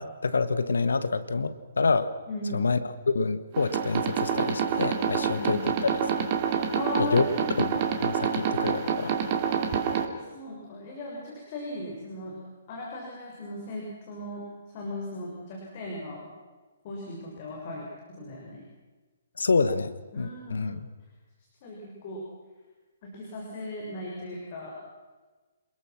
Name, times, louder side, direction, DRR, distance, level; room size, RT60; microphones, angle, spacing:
voice 1, 0.0-2.1 2.5-2.8 3.0-5.9 6.2-6.3 7.0-7.2 7.6-7.7 8.0-9.1 19.4-20.9, left 4 dB, 70° left, 12 dB, 1.5 m, -27 dB
voice 2, 2.3-2.6 5.3-5.6 6.7-7.6 10.1-12.4 12.7-14.4 14.7-16.3 16.8-18.6 20.1-20.7 21.6-22.2 23.0-24.8, left 1 dB, 40° left, -1 dB, 6.6 m, -37 dB
sound 1, 3.5-10.1, right 7 dB, 35° right, 2.7 m, -27 dB
27.5 x 21.0 x 6.1 m, 1.3 s
figure-of-eight pair, 125°, 0 cm